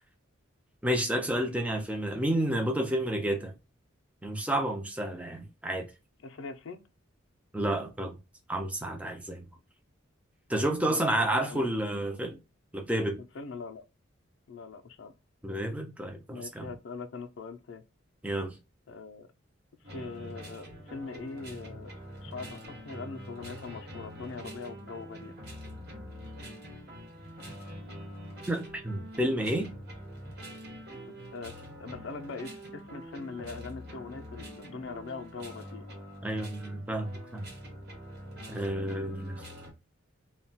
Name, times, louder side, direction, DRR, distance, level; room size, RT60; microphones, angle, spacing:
voice 1, 0.8-3.5 4.2-5.9 7.5-8.2 8.5-9.4 10.5-12.4 12.7-13.2 15.4-16.7 18.2-18.5 28.5-29.7 36.2-37.5 38.5-39.4, right 1 dB, 5° right, 0.4 m, -30 dB
voice 2, 6.2-6.8 10.8-11.7 13.2-13.8 14.5-15.1 16.3-17.8 18.9-19.3 19.9-21.9 22.2-25.3 31.1-35.9, left 4 dB, 65° left, 0.4 m, -42 dB
sound 1, 19.8-39.7, equal, 50° right, 1.0 m, -45 dB
2.3 x 2.1 x 3.9 m
head